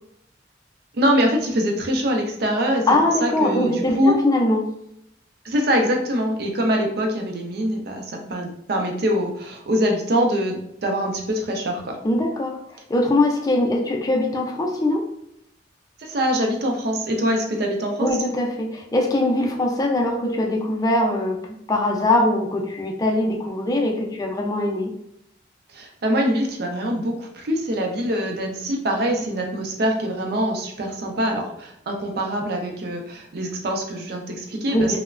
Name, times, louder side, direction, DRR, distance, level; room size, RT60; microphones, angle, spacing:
voice 1, 0.9-2.9 3.2-4.1 5.4-12.0 16.0-18.1 25.7-34.9, equal, 60° right, 2 dB, 0.5 m, -24 dB
voice 2, 2.9-4.7 12.0-15.1 18.0-24.9 34.7-35.0, left 1 dB, 20° left, 1 dB, 0.4 m, -22 dB
3.0 x 2.1 x 2.4 m, 0.74 s
head